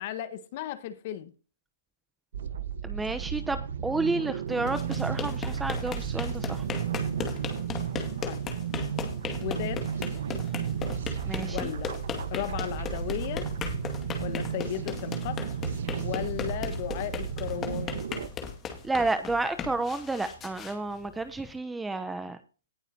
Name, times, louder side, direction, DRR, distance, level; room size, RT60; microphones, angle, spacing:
voice 1, 0.0-1.3 8.2-8.4 9.4-10.0 11.5-11.9 12.3-13.5 14.2-15.4 16.0-17.9, left 12 dB, 40° left, 1.4 m, -35 dB
sound 1, 2.3-18.3, right 8 dB, 60° right, 1.2 m, -33 dB
voice 2, 2.8-6.6 11.3-11.7 18.8-22.4, right 3 dB, 5° right, 0.9 m, -31 dB
sound 2, 4.5-21.5, left 6 dB, 20° left, 2.1 m, -37 dB
18.5 x 7.1 x 2.8 m
hypercardioid pair, 140°, 0 cm